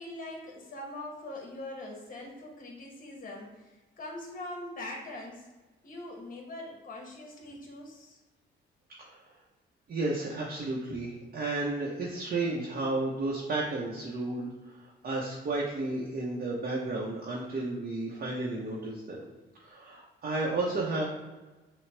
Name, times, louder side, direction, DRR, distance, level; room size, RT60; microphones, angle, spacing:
voice 1, 0.0-5.5 5.8-8.2, left 1 dB, 45° left, -1 dB, 1.4 m, -42 dB
voice 2, 9.9-19.2 19.6-21.0, right 2 dB, 50° right, -3 dB, 0.9 m, -32 dB
5.9 x 2.3 x 3.3 m, 1.2 s
cardioid pair, 90°, 20 cm